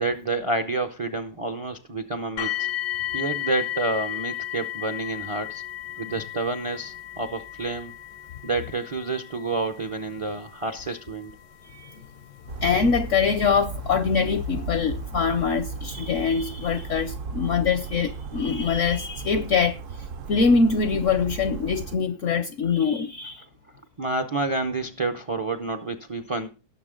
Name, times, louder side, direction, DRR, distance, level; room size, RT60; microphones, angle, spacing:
voice 1, 0.0-2.7 3.1-5.6 6.0-7.9 8.4-11.4 24.0-26.5, right 3 dB, 40° right, 0.4 m, -29 dB
sound 1, 2.4-15.3 16.1-16.2 16.8-16.9, left 13 dB, 85° left, 1.6 m, -35 dB
voice 2, 11.7-12.0 12.6-19.8 20.3-23.4, left 5 dB, 60° left, 0.8 m, -23 dB
Bird vocalization bird call bird song, 12.5-22.0, right 5 dB, 60° right, 1.0 m, -35 dB
17.5 x 6.7 x 3.7 m
omnidirectional pair, 1.8 m